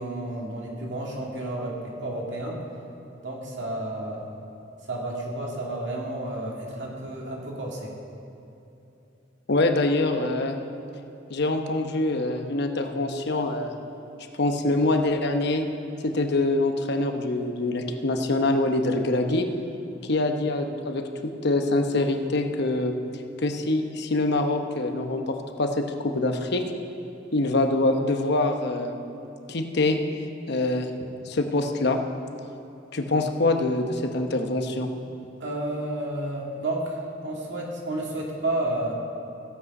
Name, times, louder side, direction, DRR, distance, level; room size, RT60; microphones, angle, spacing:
voice 1, 0.0-2.6 3.2-4.3 4.8-7.9 35.4-38.9, right 1 dB, 70° right, -2 dB, 2.2 m, -31 dB
voice 2, 9.5-10.5 11.3-13.7 14.4-15.6 16.0-19.5 20.1-22.9 23.4-26.6 27.3-29.0 29.5-30.0 30.5-30.9 31.3-32.0 32.9-34.9, left 2 dB, 60° left, 5 dB, 0.9 m, -24 dB
15.0 x 8.5 x 5.4 m, 3.0 s
head